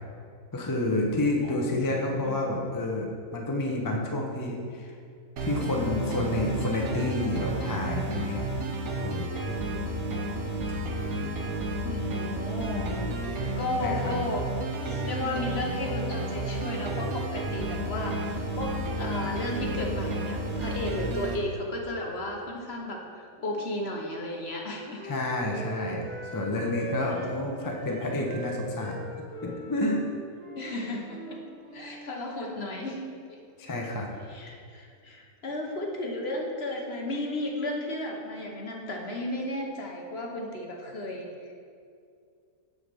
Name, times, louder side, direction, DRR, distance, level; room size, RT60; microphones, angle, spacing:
voice 1, 0.5-3.1 3.3-4.9 5.4-8.4 9.0-9.3 12.7-13.0 13.8-14.1 25.0-26.0 26.3-29.0 29.4-30.1 33.6-34.1, left 1 dB, 20° left, 0 dB, 0.5 m, -29 dB
voice 2, 1.4-2.5 11.8-12.9 13.6-14.5 14.8-25.0 26.0-26.2 30.6-31.4 31.7-33.0 33.3-33.4 34.3-41.5, left 1 dB, 50° left, 0 dB, 1.0 m, -34 dB
sound 1, 5.4-21.4, right 1 dB, 70° right, 1.3 m, -31 dB
Wind instrument woodwind instrument, 23.4-27.3 27.7-32.1, right 1 dB, 85° right, 1.8 m, -41 dB
8.1 x 3.9 x 6.8 m, 2.3 s
omnidirectional pair, 1.6 m